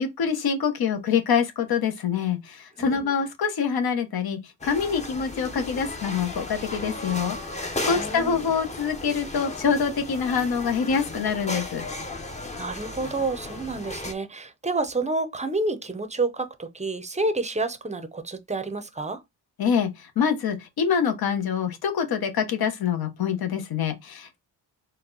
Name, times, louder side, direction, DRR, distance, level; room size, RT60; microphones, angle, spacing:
voice 1, 0.0-11.8 19.6-24.4, left 6 dB, 60° left, 1.0 m, -25 dB
sound 1, 4.6-14.1, left 2 dB, 15° left, 0.8 m, -35 dB
voice 2, 7.9-8.5 12.6-19.2, right 3 dB, 15° right, 0.6 m, -29 dB
4.4 x 2.2 x 3.8 m
cardioid pair, 100°, 41 cm